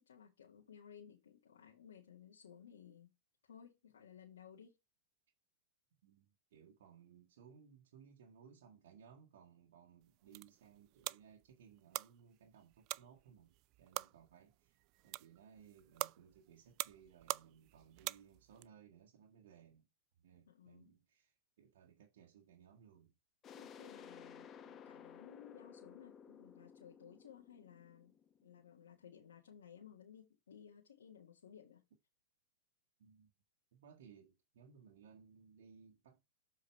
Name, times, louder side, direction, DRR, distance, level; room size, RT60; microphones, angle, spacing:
voice 1, 0.0-3.1 3.4-4.8 20.5-20.9 23.5-28.2 28.4-31.8, left 8 dB, 85° left, 1.9 m, -58 dB
voice 2, 6.0-19.9 20.2-23.1 33.0-33.3 33.7-36.2, right 7 dB, 70° right, 1.7 m, -62 dB
sound 1, 10.0-18.7, right 21 dB, 45° right, 0.3 m, -46 dB
sound 2, 23.4-28.9, left 7 dB, 25° left, 1.0 m, -56 dB
7.4 x 4.7 x 4.6 m
hypercardioid pair, 125°, 0 cm